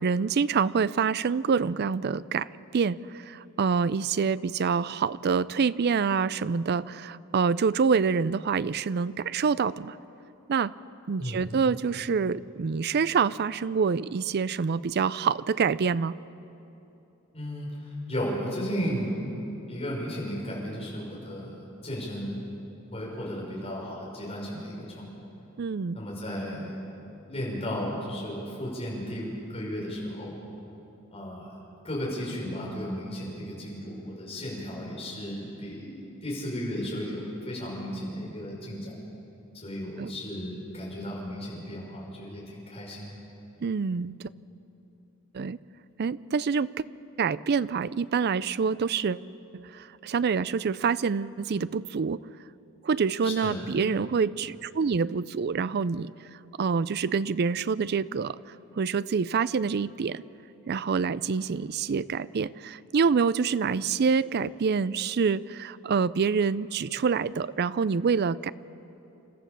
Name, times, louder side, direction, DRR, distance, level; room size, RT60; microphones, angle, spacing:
voice 1, 0.0-2.5 2.7-9.9 10.5-10.7 11.1-16.1 25.6-26.0 40.0-40.1 43.6-44.3 45.3-45.6 46.0-46.8 47.2-49.2 49.5-52.2 52.8-56.1 56.6-58.4 58.8-60.2 60.7-68.5, right 5 dB, 50° right, 17 dB, 0.4 m, -26 dB
voice 2, 11.2-11.6 17.3-17.7 18.1-19.2 19.7-22.5 22.9-25.2 25.9-26.8 27.3-30.3 31.1-31.5 31.8-38.9 39.5-43.2 53.2-53.6, equal, 30° left, -4 dB, 6.0 m, -34 dB
29.5 x 13.5 x 6.9 m, 3.0 s
head